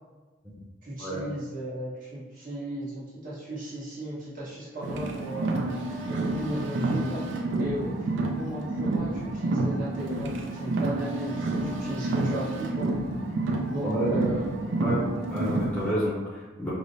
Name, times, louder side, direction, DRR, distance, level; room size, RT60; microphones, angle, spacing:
voice 1, 0.8-5.7 6.1-12.9 13.6-14.5, right 1 dB, 40° right, -9 dB, 1.1 m, -36 dB
Car, 4.8-15.9, right 2 dB, 65° right, 0.4 m, -29 dB
voice 2, 13.8-14.3 14.8-16.7, equal, 5° left, -8 dB, 0.6 m, -29 dB
4.8 x 2.0 x 2.6 m, 1.3 s
head